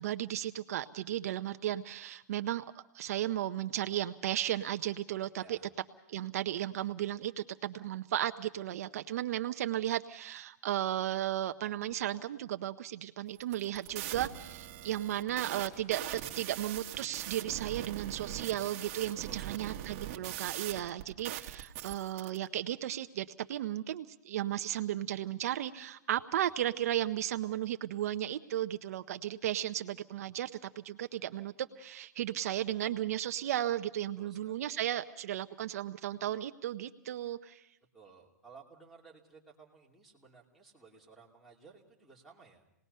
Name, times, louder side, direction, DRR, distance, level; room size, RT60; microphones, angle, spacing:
voice 1, 0.0-2.6 2.9-5.6 6.1-30.5 30.8-37.7, right 12 dB, 60° right, 9 dB, 0.7 m, -35 dB
voice 2, 5.3-5.7 19.2-19.7 26.3-26.5 34.2-34.7 37.9-42.6, right 5 dB, ahead, -5 dB, 2.9 m, -57 dB
sound 1, 13.4-22.4, right 13 dB, 40° right, 1.6 m, -41 dB
28.0 x 19.5 x 5.5 m, 0.79 s
hypercardioid pair, 150°, 9 cm